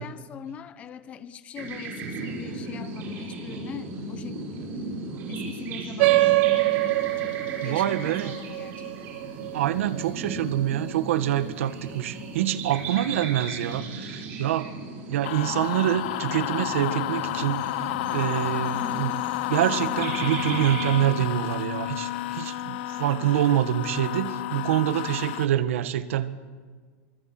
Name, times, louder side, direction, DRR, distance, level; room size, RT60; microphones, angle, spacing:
voice 1, 0.0-4.7 5.3-8.7 18.7-19.2, left 8 dB, 20° left, 13 dB, 0.9 m, -42 dB
sound 1, 1.6-21.3, right 3 dB, 30° right, 5.9 m, -37 dB
sound 2, 6.0-10.9, right 21 dB, 50° right, 0.9 m, -25 dB
voice 2, 7.6-8.3 9.5-14.7 15.1-17.9 18.1-19.1 19.5-26.5, right 12 dB, 80° right, 11 dB, 1.7 m, -26 dB
sound 3, 15.2-25.5, left 15 dB, 55° left, 0.7 m, -31 dB
25.0 x 23.0 x 7.8 m, 1.5 s
supercardioid pair, 180°, 7 cm